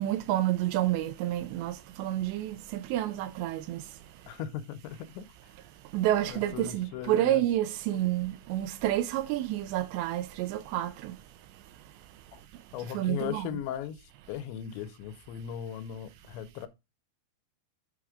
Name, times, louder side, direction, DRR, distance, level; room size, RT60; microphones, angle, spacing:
voice 1, 0.0-3.8 5.9-11.2 12.9-13.6, right 13 dB, 85° right, 2.9 m, -29 dB
voice 2, 4.3-5.3 6.3-7.4 7.9-8.0 12.3-12.4 12.7-14.0 14.3-16.7, left 10 dB, 85° left, 2.9 m, -38 dB
8.9 x 5.0 x 3.6 m
omnidirectional pair, 5.1 m